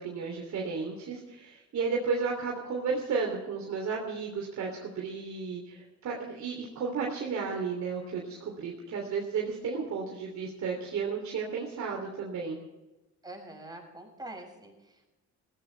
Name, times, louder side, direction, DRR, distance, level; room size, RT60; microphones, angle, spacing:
voice 1, 0.0-12.6, right 5 dB, 65° right, -1 dB, 3.2 m, -33 dB
voice 2, 13.2-15.2, right 1 dB, 15° right, 0 dB, 6.7 m, -45 dB
19.5 x 16.5 x 3.4 m, 1.1 s
cardioid pair, 90°, 30 cm